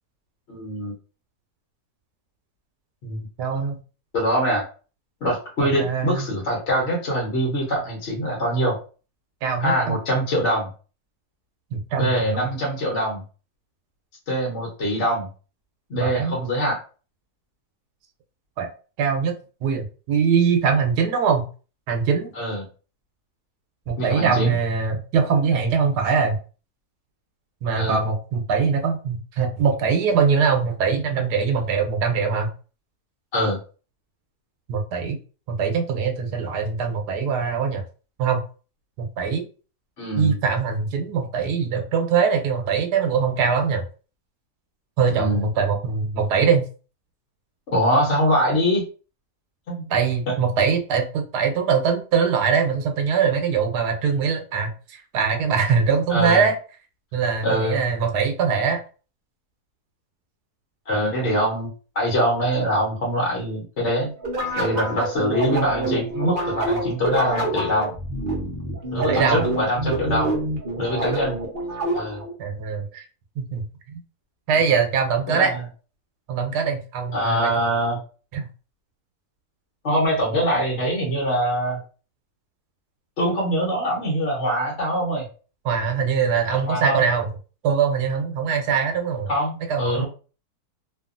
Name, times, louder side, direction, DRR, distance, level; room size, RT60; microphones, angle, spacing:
voice 1, 0.5-0.9 3.0-3.2 4.1-4.6 5.2-8.8 9.6-10.7 12.0-13.2 14.3-15.3 15.9-16.8 22.3-22.6 24.0-24.5 27.8-28.0 33.3-33.6 40.0-40.4 45.1-45.5 47.7-48.8 49.7-49.8 50.3-50.4 56.1-56.5 57.4-57.8 60.9-61.7 61.9-64.1 64.6-67.9 68.9-70.3 70.8-71.4 71.9-72.2 75.3-75.6 77.1-78.0 79.8-81.8 83.2-85.3 86.5-87.0 89.3-90.0, equal, 50° left, -3 dB, 1.1 m, -23 dB
voice 2, 3.4-3.8 5.6-6.3 9.4-10.0 11.7-12.5 15.9-16.4 18.6-18.7 19.0-19.3 19.6-21.5 21.9-22.3 23.9-26.4 27.6-32.5 34.7-35.2 35.5-37.8 38.2-38.4 39.0-39.4 40.2-43.8 45.0-46.6 49.9-56.5 57.1-58.8 69.0-69.4 72.4-73.0 73.4-73.6 74.5-75.5 76.3-77.5 78.3-78.5 85.6-87.3 87.6-89.3 89.7-90.0, right 6 dB, 85° right, 4 dB, 1.2 m, -22 dB
sound 1, 64.2-72.3, right 1 dB, 45° right, 0.7 m, -26 dB
2.7 x 2.4 x 2.4 m, 0.37 s
omnidirectional pair, 1.7 m